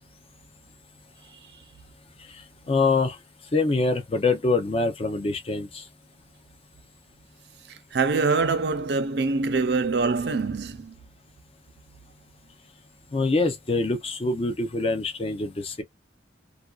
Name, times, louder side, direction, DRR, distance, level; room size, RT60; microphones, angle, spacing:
voice 1, 2.7-3.2 3.5-5.8 13.1-15.8, left 3 dB, 35° left, 0.5 m, -24 dB
voice 2, 7.9-10.9, right 4 dB, 65° right, 0.5 m, -24 dB
2.5 x 2.2 x 2.3 m
head